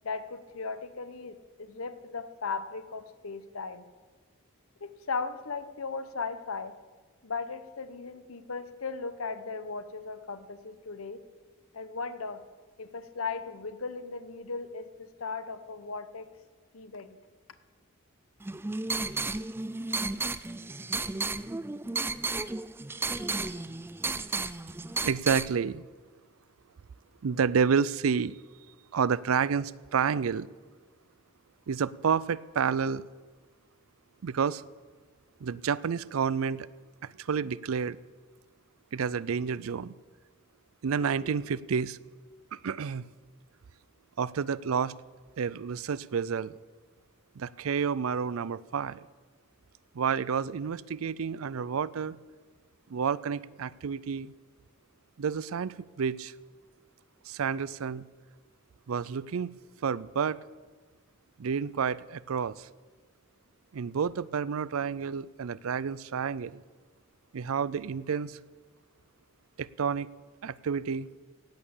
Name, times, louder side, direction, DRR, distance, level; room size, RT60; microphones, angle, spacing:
voice 1, 0.0-3.9 4.8-6.7 7.2-11.2 11.7-12.4 12.8-16.3 16.7-17.2, left 4 dB, 80° left, 12 dB, 1.0 m, -37 dB
sound 1, 18.4-25.5, right 3 dB, 10° right, 0.4 m, -33 dB
voice 2, 25.0-25.8 27.2-28.4 28.9-30.5 31.7-33.0 34.2-34.6 35.4-36.7 37.0-38.0 38.9-39.9 40.8-42.0 42.5-43.1 44.2-45.0 45.4-46.5 47.4-49.1 49.9-52.2 52.9-54.3 55.2-56.3 57.3-58.1 58.9-59.5 59.8-60.4 61.4-62.7 63.7-66.6 67.3-68.4 69.6-70.1 70.4-71.1, right 6 dB, 80° right, 20 dB, 0.4 m, -30 dB
17.0 x 8.7 x 7.2 m, 1.4 s
head